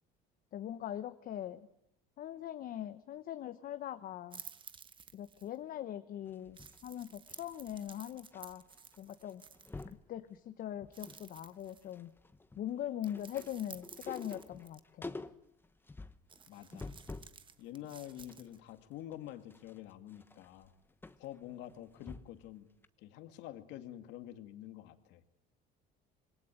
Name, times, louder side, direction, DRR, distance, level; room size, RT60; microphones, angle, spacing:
voice 1, 0.5-1.7 2.2-4.4 5.1-8.6 9.0-9.4 10.1-12.1 12.6-15.1, left 11 dB, 50° left, 9 dB, 1.1 m, -41 dB
sound 1, 4.3-5.6 6.5-9.9 10.9-12.0 13.0-14.8 16.3-18.6, right 6 dB, 25° right, 1.1 m, -54 dB
sound 2, 6.3-8.4 8.7-9.0 9.2-10.1 10.6-11.3 11.5-17.4 17.8-22.5 22.8-22.9, left 3 dB, 10° left, 1.1 m, -49 dB
voice 2, 16.5-16.9 17.6-20.7 21.2-22.7 23.0-25.2, left 12 dB, 75° left, 8 dB, 2.3 m, -47 dB
26.0 x 21.5 x 9.1 m, 0.79 s
cardioid pair, 125°, 19 cm